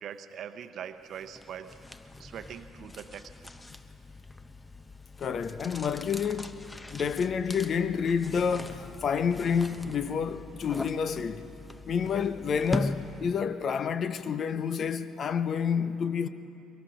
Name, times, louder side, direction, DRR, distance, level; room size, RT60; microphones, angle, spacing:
voice 1, 0.0-3.3, right 8 dB, 55° right, 0.9 m, -42 dB
sound 1, 1.1-13.5, left 2 dB, 20° left, 0.9 m, -40 dB
voice 2, 5.2-6.5 6.9-11.4 11.9-16.3, left 6 dB, 50° left, 0.8 m, -29 dB
23.0 x 22.5 x 5.1 m
hypercardioid pair, 50°, 0 cm